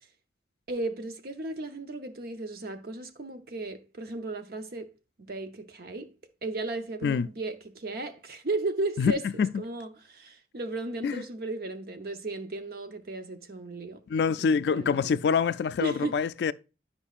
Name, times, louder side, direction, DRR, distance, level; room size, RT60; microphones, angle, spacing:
voice 1, 0.7-4.9 5.3-6.1 6.4-14.0 14.3-15.3 15.8-16.2, right 2 dB, 55° right, 0.8 m, -35 dB
voice 2, 9.0-9.5 11.0-11.2 14.1-16.5, left 6 dB, 70° left, 0.3 m, -25 dB
10.0 x 5.2 x 2.4 m
head